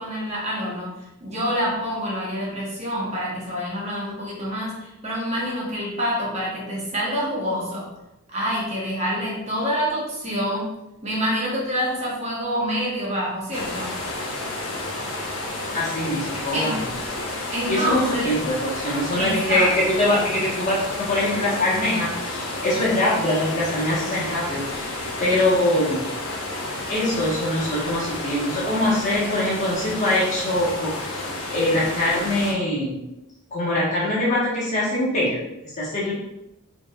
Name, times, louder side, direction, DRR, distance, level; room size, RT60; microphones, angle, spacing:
voice 1, 0.0-7.9 8.3-10.7 11.0-14.0 16.5-16.8 17.5-18.3 19.2-19.8, equal, 30° right, -5 dB, 1.0 m, -27 dB
sound 1, 13.5-32.5, left 2 dB, 75° left, 1.0 m, -31 dB
voice 2, 15.7-16.8 17.7-24.9 25.2-26.1 26.9-31.2 31.5-33.0 33.5-35.4 35.7-36.1, left 1 dB, 35° left, -6 dB, 1.3 m, -23 dB
5.1 x 3.3 x 2.4 m, 0.91 s
head